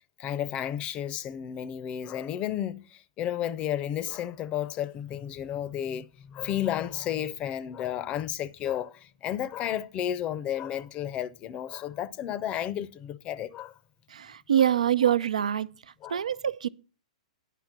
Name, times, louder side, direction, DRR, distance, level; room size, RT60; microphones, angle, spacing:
voice 1, 0.2-13.7 14.6-14.7 16.0-16.3, left 10 dB, 30° left, 0.6 m, -32 dB
voice 2, 14.1-15.7 16.1-16.7, right 10 dB, 75° right, 0.5 m, -25 dB
10.0 x 5.6 x 7.3 m
hypercardioid pair, 115°, 4 cm